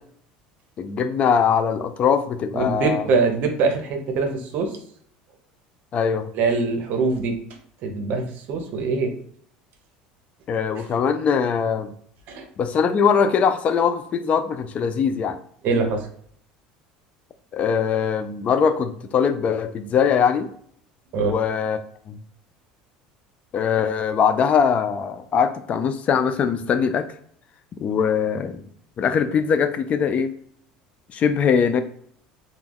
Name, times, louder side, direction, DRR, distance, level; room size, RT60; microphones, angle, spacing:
voice 1, 0.8-3.1 5.9-6.3 10.5-11.9 12.6-15.4 17.5-20.5 21.2-21.8 22.1-22.2 23.5-27.1 27.8-28.6 29.0-30.3 31.1-31.8, left 7 dB, 40° left, 9 dB, 0.4 m, -21 dB
voice 2, 2.5-4.7 6.3-7.4 7.8-9.1 12.3-12.5 15.6-16.1 21.1-21.3, right 4 dB, 55° right, 5 dB, 0.7 m, -23 dB
2.2 x 2.1 x 3.4 m, 0.63 s
supercardioid pair, 100°, 4 cm